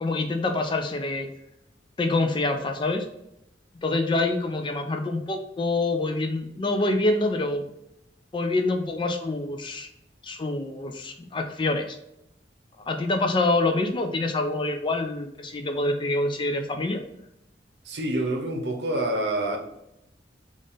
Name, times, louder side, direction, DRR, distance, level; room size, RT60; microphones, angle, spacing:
voice 1, 0.0-1.3 2.0-3.1 3.8-7.7 8.3-9.9 10.2-12.0 12.9-17.0, left 2 dB, 25° left, 5 dB, 0.4 m, -26 dB
voice 2, 17.8-19.6, right 1 dB, 65° right, 2 dB, 0.7 m, -27 dB
3.6 x 2.5 x 3.9 m, 0.84 s
head